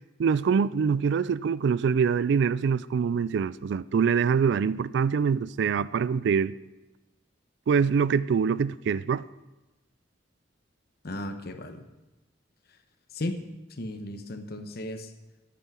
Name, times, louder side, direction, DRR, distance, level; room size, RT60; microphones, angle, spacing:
voice 1, 0.2-6.5 7.7-9.2, right 6 dB, 65° right, 0.3 m, -24 dB
voice 2, 11.0-11.8 13.1-13.4 13.8-15.1, left 1 dB, 55° left, 1.0 m, -35 dB
9.2 x 8.4 x 6.1 m
head